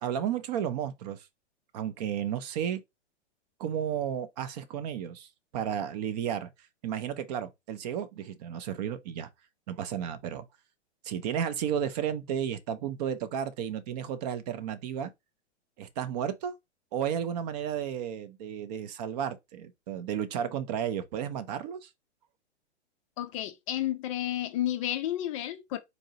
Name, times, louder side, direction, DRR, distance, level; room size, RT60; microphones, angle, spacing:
voice 1, 0.0-1.3 1.7-2.8 3.6-5.3 5.5-6.5 6.8-9.3 9.7-10.5 11.0-15.1 15.8-16.5 16.9-21.9, right 9 dB, 35° right, 0.5 m, -33 dB
voice 2, 23.2-25.8, left 12 dB, 30° left, 0.4 m, -31 dB
4.0 x 2.5 x 2.8 m
hypercardioid pair, 115°, 35 cm